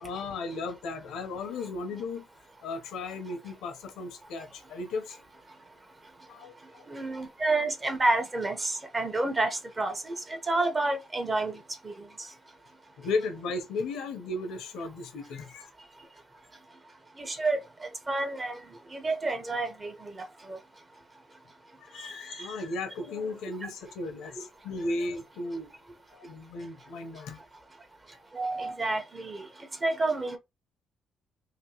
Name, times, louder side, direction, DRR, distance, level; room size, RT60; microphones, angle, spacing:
voice 1, 0.0-2.3 2.6-5.2 6.3-6.6 13.0-15.7 21.8-25.7 26.1-27.4, left 3 dB, 90° left, 0.8 m, -35 dB
voice 2, 6.9-11.6 11.8-11.9 17.2-17.6 18.1-18.6 18.9-20.6 22.0-22.1 28.3-29.4 29.8-30.4, right 2 dB, 20° right, 0.9 m, -29 dB
3.1 x 2.9 x 2.9 m
cardioid pair, 125°, 0 cm